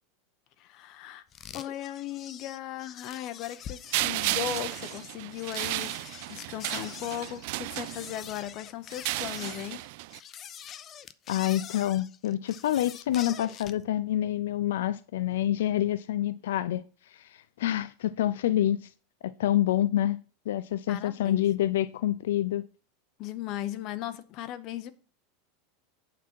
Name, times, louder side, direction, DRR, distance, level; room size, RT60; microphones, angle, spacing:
voice 1, 0.6-1.2 1.5-9.8 20.9-21.4 23.2-24.9, left 12 dB, 45° left, 0.9 m, -37 dB
sound 1, 1.3-13.8, left 9 dB, 30° left, 0.5 m, -45 dB
sound 2, 3.9-8.4 8.9-10.2, right 21 dB, 60° right, 0.3 m, -33 dB
voice 2, 11.3-18.9 19.2-20.2 20.5-22.7, left 12 dB, 90° left, 0.4 m, -27 dB
8.4 x 6.0 x 4.6 m
supercardioid pair, 140°, 0 cm